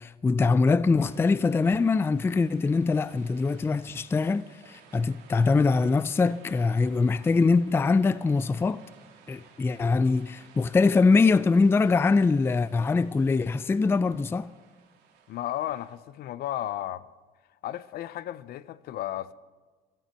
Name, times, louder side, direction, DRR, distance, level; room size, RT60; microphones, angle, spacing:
voice 1, 0.0-8.8 9.3-14.5, left 4 dB, 15° left, 0.3 m, -23 dB
sound 1, 1.0-16.0, right 6 dB, 90° right, 2.0 m, -56 dB
voice 2, 15.3-17.1 17.6-19.3, left 13 dB, 65° left, 0.5 m, -34 dB
16.0 x 13.5 x 4.5 m
cardioid pair, 110°, 17 cm